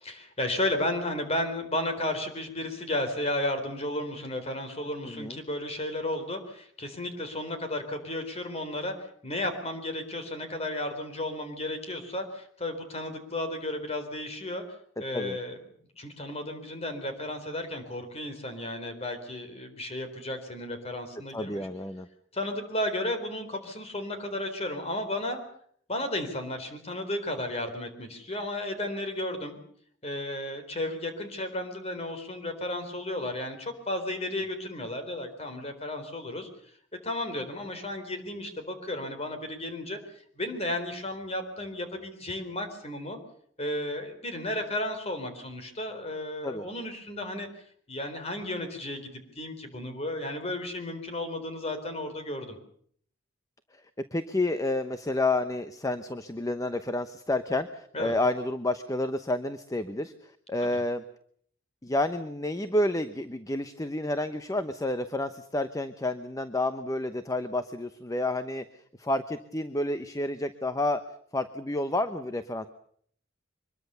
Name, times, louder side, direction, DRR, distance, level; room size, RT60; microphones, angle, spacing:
voice 1, 0.0-14.6 15.0-15.6 16.0-21.7 22.3-25.4 25.9-29.6 30.0-36.5 37.0-40.0 40.4-43.2 43.6-47.5 47.9-52.6 57.9-58.2 60.6-60.8, left 1 dB, 30° left, 7 dB, 4.1 m, -33 dB
voice 2, 5.1-5.4 15.1-15.4 21.3-22.1 46.4-46.7 54.1-61.0 61.8-68.6 69.0-71.0 71.3-72.7, left 2 dB, 15° left, 10 dB, 0.9 m, -30 dB
24.5 x 21.5 x 6.9 m, 0.62 s
head